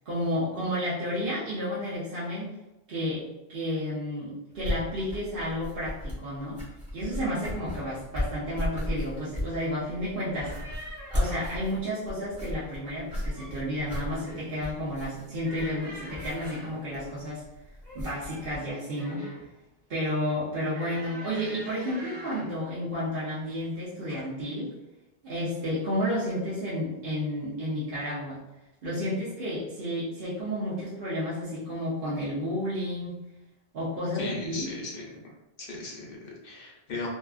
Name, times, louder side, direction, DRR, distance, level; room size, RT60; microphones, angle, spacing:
voice 1, 0.1-2.5 2.9-3.2 3.5-6.6 6.9-10.5 11.1-17.4 17.9-19.2 19.9-24.7 25.2-28.4 28.8-33.1 33.7-34.7, equal, 60° right, -8 dB, 0.8 m, -31 dB
sound 1, 4.5-18.6, left 1 dB, 5° right, 0.9 m, -36 dB
sound 2, 10.4-11.6 13.0-13.6 14.0-14.5 15.4-16.8 17.8-19.5 20.7-22.6 23.4-23.7 24.1-24.3, right 1 dB, 40° right, 1.1 m, -44 dB
voice 2, 34.1-35.1 35.6-37.1, left 3 dB, 65° left, -2 dB, 0.8 m, -37 dB
2.6 x 2.3 x 2.3 m, 0.96 s
omnidirectional pair, 1.1 m